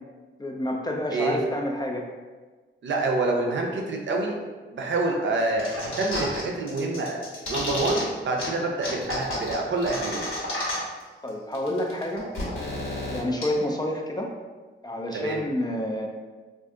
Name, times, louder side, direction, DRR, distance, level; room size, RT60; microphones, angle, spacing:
voice 1, 0.4-2.1 11.2-12.3 13.1-14.3 14.8-16.1, left 1 dB, 20° left, 1 dB, 0.3 m, -28 dB
voice 2, 2.8-4.3 4.7-7.2 7.5-10.3 15.1-15.4, right 2 dB, 65° right, 0 dB, 0.5 m, -27 dB
sound 1, 5.6-6.4 6.7-8.0 8.4-8.5 8.8-11.0 11.3-11.4 11.5-13.4, left 1 dB, 75° left, 1.1 m, -31 dB
2.5 x 2.4 x 3.6 m, 1.3 s
wide cardioid pair, 115°, 20 cm